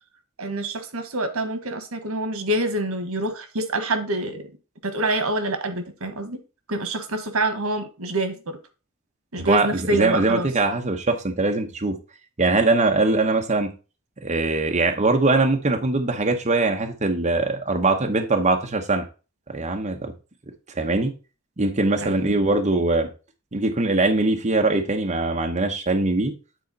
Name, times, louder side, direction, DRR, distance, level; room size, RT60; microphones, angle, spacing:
voice 1, 0.4-4.5 4.8-6.4 6.7-8.6 9.3-10.5 22.0-22.3, right 1 dB, 85° right, 9 dB, 1.4 m, -26 dB
voice 2, 9.9-12.0 12.4-13.7 14.2-19.0 19.5-20.1 20.7-21.1 21.6-23.1 23.5-26.3, right 3 dB, 35° right, 3 dB, 0.9 m, -21 dB
9.2 x 4.2 x 4.0 m, 0.32 s
head